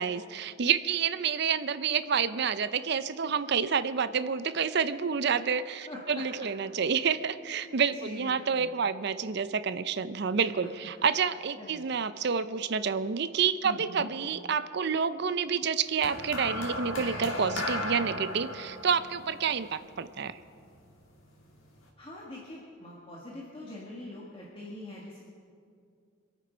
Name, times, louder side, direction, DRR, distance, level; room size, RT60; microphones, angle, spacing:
voice 1, 0.0-20.4, right 6 dB, 55° right, 13 dB, 0.5 m, -29 dB
voice 2, 5.9-6.2 7.5-8.7 11.6-11.8 13.6-14.1 22.0-25.3, left 1 dB, 25° left, -4 dB, 1.6 m, -44 dB
sound 1, 16.0-20.5 21.4-21.6, left 1 dB, 85° left, 2.7 m, -36 dB
25.5 x 9.2 x 5.1 m, 2.4 s
head